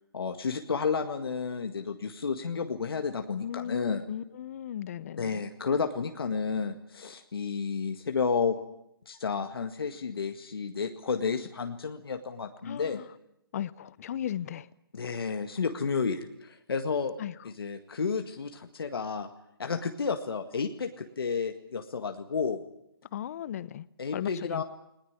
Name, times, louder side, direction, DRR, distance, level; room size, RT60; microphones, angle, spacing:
voice 1, 0.1-4.0 5.2-8.6 9.1-13.0 14.9-17.1 17.4-19.3 19.6-22.6 24.0-24.6, left 5 dB, 70° left, 1.9 m, -31 dB
voice 2, 3.4-5.4 12.6-13.1 13.5-14.7 17.2-17.3 23.1-23.9 24.1-24.6, left 10 dB, 40° left, 0.8 m, -36 dB
20.0 x 20.0 x 9.8 m
hypercardioid pair, 150°, 13 cm